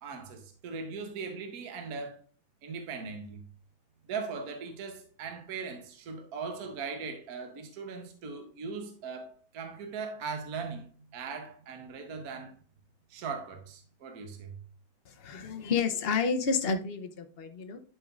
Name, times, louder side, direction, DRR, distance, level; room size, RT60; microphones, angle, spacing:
voice 1, 0.0-2.2 2.6-3.5 4.1-10.9 11.1-12.6 13.1-14.6, right 5 dB, 55° right, 1.3 m, -39 dB
voice 2, 15.1-17.8, left 5 dB, 75° left, 0.5 m, -30 dB
11.5 x 5.3 x 2.5 m
omnidirectional pair, 2.2 m